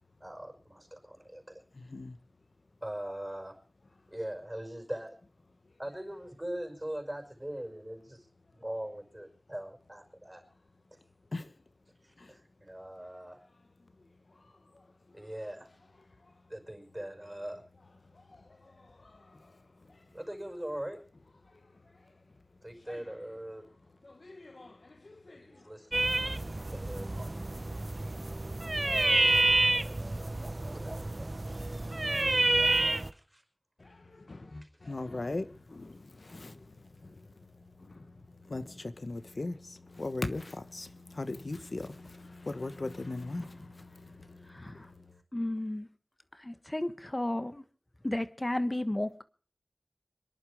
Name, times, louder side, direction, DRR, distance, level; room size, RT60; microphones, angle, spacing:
voice 1, 0.2-1.6 2.8-3.6 4.1-5.2 5.8-10.4 10.9-11.0 12.0-13.4 15.1-15.7 16.5-17.6 20.1-21.0 22.6-23.7 25.3-27.1 28.8-31.3 33.1-33.4 34.6-34.9, right 1 dB, 25° right, 5.4 m, -42 dB
voice 2, 1.7-2.2 11.3-11.6 12.2-12.4 14.3-15.2 16.2-16.3 18.1-20.1 21.5-22.0 22.9-23.1 24.0-25.7 26.6-26.7 27.5-27.6 28.1-28.4 33.8-45.2, left 2 dB, 85° left, 1.2 m, -41 dB
sound 1, 25.9-33.1, right 2 dB, 55° right, 0.8 m, -29 dB
voice 3, 45.3-45.9 46.4-47.6 48.0-49.2, left 1 dB, 35° left, 1.2 m, -33 dB
25.0 x 11.0 x 5.0 m
wide cardioid pair, 45°, 0 cm